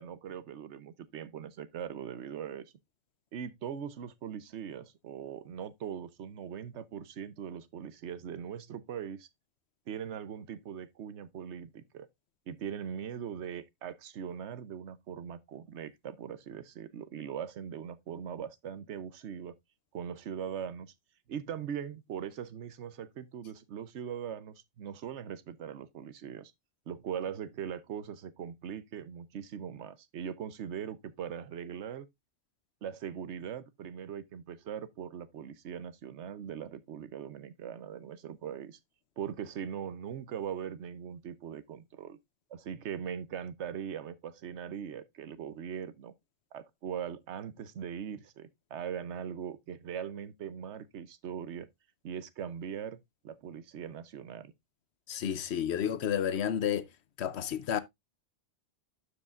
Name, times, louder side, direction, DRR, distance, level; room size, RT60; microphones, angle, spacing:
voice 1, 0.0-2.7 3.3-9.3 9.9-12.1 12.5-19.5 19.9-20.9 21.3-26.5 26.9-32.1 32.8-38.8 39.2-42.2 42.5-46.1 46.5-51.7 52.0-54.5, right 8 dB, 85° right, 1.1 m, -40 dB
voice 2, 55.1-56.9 57.2-57.8, left 9 dB, 75° left, 1.0 m, -31 dB
12.0 x 4.9 x 2.4 m
omnidirectional pair, 1.1 m